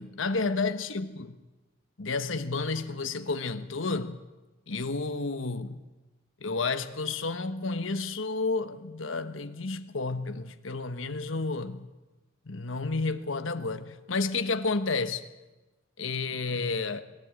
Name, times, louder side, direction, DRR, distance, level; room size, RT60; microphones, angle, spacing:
voice 1, 0.0-1.4 2.0-4.2 4.7-5.8 6.4-11.9 12.4-15.3 16.0-17.0, left 3 dB, 65° left, 1.3 m, -31 dB
22.5 x 13.5 x 9.0 m
head